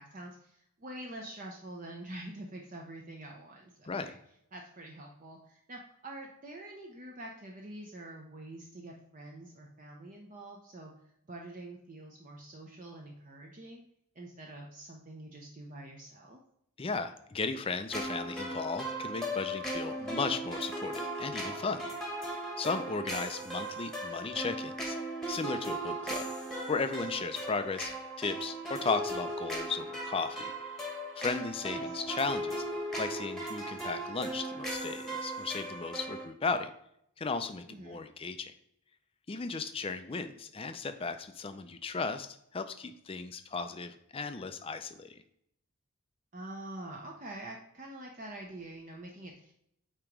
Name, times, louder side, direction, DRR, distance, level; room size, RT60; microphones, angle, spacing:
voice 1, 0.0-4.2 4.5-10.9 11.3-13.8 14.1-16.4 23.1-23.3 31.6-31.9 37.7-38.0 46.3-49.5, right 1 dB, 35° right, 0 dB, 0.7 m, -46 dB
voice 2, 16.8-21.9 22.6-25.0 25.3-26.2 26.7-27.9 28.2-30.5 31.2-32.6 33.0-36.7 37.2-38.5 39.3-45.1, left 4 dB, 25° left, 9 dB, 0.4 m, -35 dB
sound 1, 17.9-36.3, right 1 dB, ahead, 1.1 m, -37 dB
8.8 x 3.0 x 4.6 m, 0.75 s
head